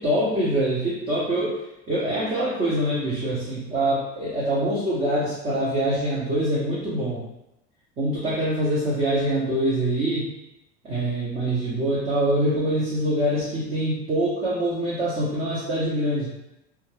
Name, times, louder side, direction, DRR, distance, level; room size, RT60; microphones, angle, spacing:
voice 1, 0.0-1.6 1.9-7.2 8.0-10.3 10.8-16.3, right 1 dB, 20° right, -8 dB, 0.6 m, -24 dB
2.2 x 2.2 x 3.1 m, 0.87 s
supercardioid pair, 130°, 31 cm